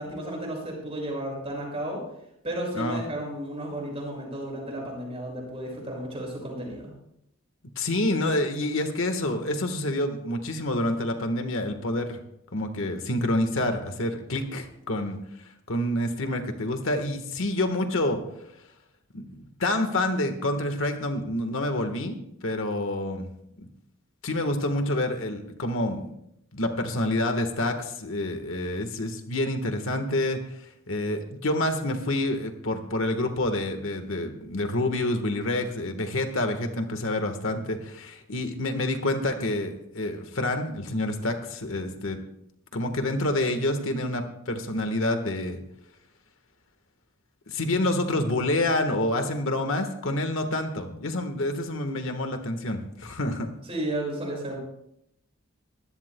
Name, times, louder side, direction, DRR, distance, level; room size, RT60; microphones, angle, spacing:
voice 1, 0.0-2.0 2.4-6.9 53.7-54.6, right 1 dB, 25° right, -1 dB, 6.5 m, -33 dB
voice 2, 7.8-12.2 12.5-15.2 15.7-18.2 19.1-22.2 22.4-23.3 23.6-23.7 24.2-26.1 26.5-42.2 42.7-45.6 47.5-53.5, left 1 dB, 65° left, 6 dB, 1.4 m, -28 dB
22.5 x 16.0 x 2.2 m, 0.77 s
head